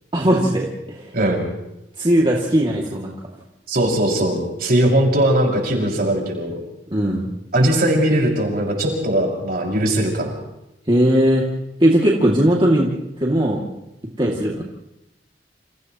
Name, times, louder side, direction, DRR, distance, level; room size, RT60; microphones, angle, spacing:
voice 1, 0.1-1.1 2.0-3.1 6.9-7.3 10.9-11.4 11.8-12.9 13.2-13.6 14.2-14.6, equal, 30° right, -3 dB, 2.5 m, -18 dB
voice 2, 1.1-1.5 3.7-6.5 7.5-10.4, right 1 dB, 55° right, 0 dB, 6.0 m, -19 dB
30.0 x 28.5 x 3.1 m, 0.89 s
head